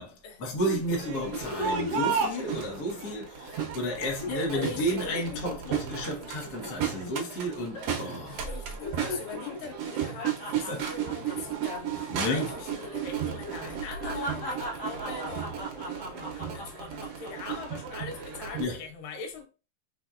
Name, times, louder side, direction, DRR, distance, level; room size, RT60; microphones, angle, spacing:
voice 1, 0.0-8.5 10.7-10.9 12.1-12.5 18.6-18.8, equal, 60° left, 1.0 m, -32 dB
sound 1, 0.6-3.2 3.5-3.7 4.0-7.4 7.7-8.2 8.5-12.5 12.8-13.0 13.4-17.5 18.0-18.4, left 2 dB, 40° left, 2.0 m, -39 dB
Crowd, 0.9-18.6, right 7 dB, 75° right, 1.5 m, -34 dB
voice 2, 4.3-5.2 8.3-19.4, left 4 dB, 80° left, 2.7 m, -41 dB
sound 2, 11.2-16.4, right 3 dB, 5° right, 1.6 m, -52 dB
4.4 x 4.1 x 2.4 m
omnidirectional pair, 3.9 m